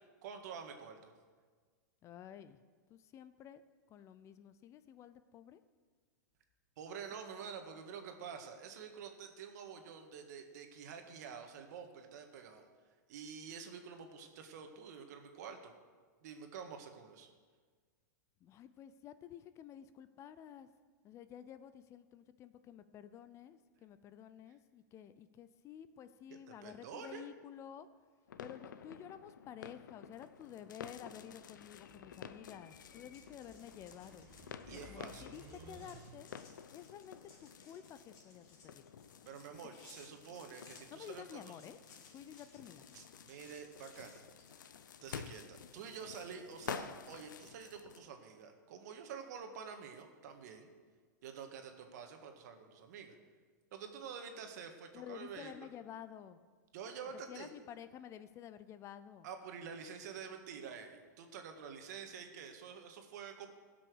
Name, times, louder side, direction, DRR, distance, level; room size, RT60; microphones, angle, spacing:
voice 1, 0.2-1.1 6.8-12.7 13.1-15.7 16.2-17.3 26.3-27.2 34.7-35.3 39.3-41.6 42.9-44.2 45.0-50.7 51.2-53.2 53.7-55.7 56.7-57.5 59.2-63.5, right 6 dB, 65° right, 5 dB, 1.7 m, -48 dB
voice 2, 2.0-2.6 2.9-3.6 3.9-5.6 18.4-20.7 21.0-27.9 28.4-34.3 34.7-36.3 36.7-38.8 40.9-42.9 54.9-56.5 57.3-59.3, left 9 dB, 30° left, 13 dB, 0.5 m, -52 dB
sound 1, 28.3-48.1, left 7 dB, 90° left, 0.7 m, -51 dB
sound 2, 30.8-36.5, right 4 dB, 35° right, 2.1 m, -59 dB
sound 3, 33.1-40.8 41.4-44.9 45.3-46.3, left 4 dB, 45° left, 3.4 m, -64 dB
16.5 x 6.2 x 6.3 m, 1.5 s
hypercardioid pair, 130°, 10 cm